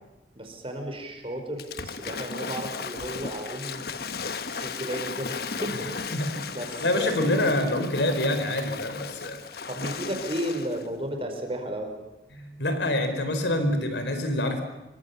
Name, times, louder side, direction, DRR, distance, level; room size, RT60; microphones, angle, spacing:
voice 1, 0.3-4.0 4.6-5.9 6.5-7.6 9.7-11.9, right 1 dB, 30° right, 4 dB, 4.8 m, -34 dB
Waves surf / Splash splatter, 1.6-10.9, left 5 dB, 60° left, 1.3 m, -35 dB
voice 2, 6.1-6.5 6.8-9.4 12.3-14.6, left 1 dB, 85° left, 7 dB, 4.2 m, -26 dB
25.5 x 23.5 x 7.1 m, 1.0 s
head